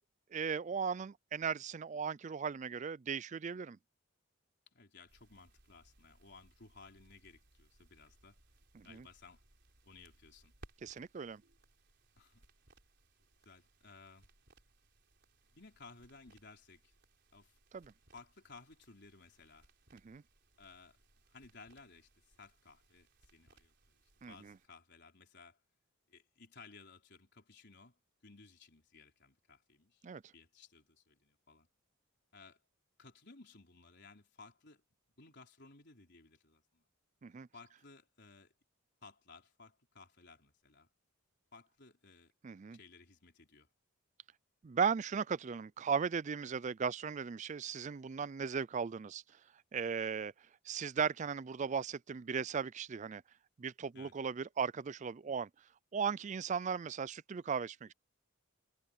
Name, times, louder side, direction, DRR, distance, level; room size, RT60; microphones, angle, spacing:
voice 1, 0.3-3.8 8.7-9.0 10.8-11.4 17.7-17.9 20.0-20.2 24.2-24.5 30.0-30.2 37.2-37.5 42.4-42.8 44.6-49.2 49.7-50.3 50.6-53.2 53.6-55.5 55.9-57.9, right 6 dB, 35° right, 0.3 m, -37 dB
voice 2, 4.7-8.4 8.8-9.4 9.8-10.5 12.2-12.4 13.4-14.3 15.5-16.9 17.3-17.6 18.1-19.7 20.6-21.0 21.3-23.8 24.3-25.6 26.1-28.0 28.2-31.7 32.3-32.6 33.0-34.8 35.2-36.8 37.5-38.5 39.0-40.9 41.5-42.3 42.7-43.7 53.9-54.2, left 4 dB, 50° left, 4.4 m, -58 dB
sound 1, 5.1-24.7, right 2 dB, 50° right, 4.6 m, -66 dB
head